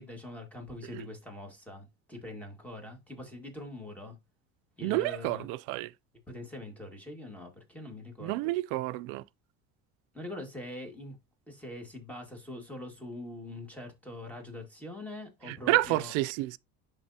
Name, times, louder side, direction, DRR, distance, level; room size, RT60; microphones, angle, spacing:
voice 1, 0.0-4.1 4.8-5.5 6.3-8.3 10.1-11.2 11.5-16.1, left 1 dB, 5° left, 1.8 m, -43 dB
voice 2, 4.8-5.9 8.2-9.2 15.5-16.6, right 18 dB, 75° right, 0.5 m, -29 dB
10.5 x 3.6 x 2.8 m
cardioid pair, 135°, 33 cm